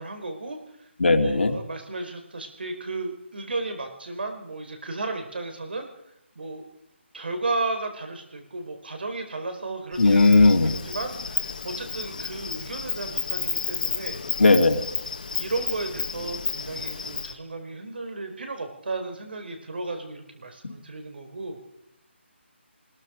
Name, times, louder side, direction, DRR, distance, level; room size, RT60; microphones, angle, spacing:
voice 1, 0.0-0.9 1.1-5.9 6.3-6.6 7.1-14.2 15.3-21.6, right 3 dB, 55° right, 6 dB, 4.8 m, -34 dB
voice 2, 1.0-1.5 10.0-10.8 14.4-14.8 20.6-20.7, left 3 dB, 65° left, 4 dB, 2.8 m, -17 dB
Insect, 9.9-17.3, left 4 dB, 40° left, 1.7 m, -32 dB
25.0 x 21.0 x 5.2 m, 0.80 s
hypercardioid pair, 180°, 7 cm